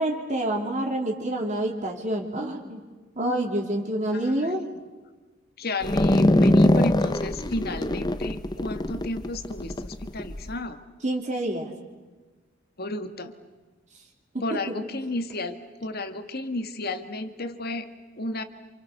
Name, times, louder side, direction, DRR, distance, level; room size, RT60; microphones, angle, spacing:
voice 1, 0.0-2.8 3.2-4.6 11.0-11.7 14.3-14.8, right 1 dB, 40° right, 1 dB, 3.2 m, -27 dB
voice 2, 5.6-10.8 12.8-13.3 14.4-15.6 15.8-17.9 18.2-18.4, left 2 dB, 55° left, 8 dB, 1.9 m, -32 dB
sound 1, 5.8-10.5, left 1 dB, 20° left, 0.8 m, -22 dB
28.5 x 28.0 x 6.7 m, 1.3 s
head